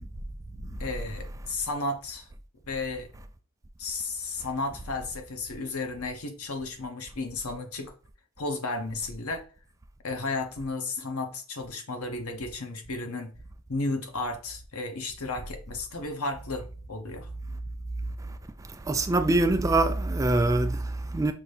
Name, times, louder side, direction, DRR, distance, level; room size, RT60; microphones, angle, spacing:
voice 1, 0.8-2.3 2.7-3.1 3.8-7.9 8.4-9.4 10.0-13.3 13.7-17.3, left 3 dB, 85° left, 0.9 m, -33 dB
voice 2, 18.8-21.3, right 2 dB, 15° right, 0.3 m, -24 dB
5.9 x 2.7 x 3.3 m
head